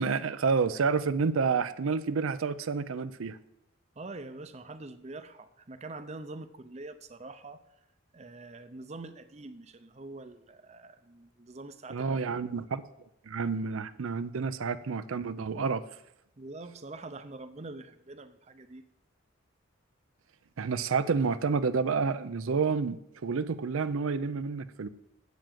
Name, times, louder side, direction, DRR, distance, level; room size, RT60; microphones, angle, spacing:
voice 1, 0.0-3.4 11.9-12.8 13.3-15.8 20.6-24.9, right 5 dB, 85° right, 13 dB, 0.5 m, -29 dB
voice 2, 4.0-7.6 8.1-12.2 16.4-18.8, right 2 dB, 30° right, 10 dB, 0.6 m, -44 dB
7.7 x 7.1 x 7.4 m, 0.82 s
head